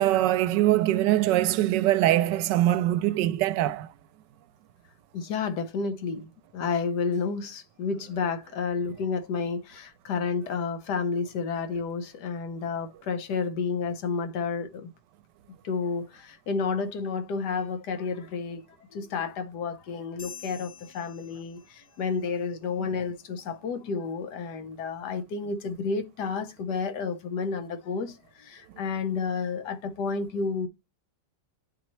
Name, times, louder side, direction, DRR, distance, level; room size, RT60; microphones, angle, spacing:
voice 1, 0.0-3.9, right 14 dB, 80° right, 1.2 m, -23 dB
voice 2, 5.1-14.9 15.6-18.6 18.9-30.7, left 5 dB, 70° left, 1.4 m, -31 dB
sound 1, 20.2-22.1, left 7 dB, 45° left, 1.1 m, -47 dB
10.0 x 4.2 x 3.0 m
omnidirectional pair, 1.9 m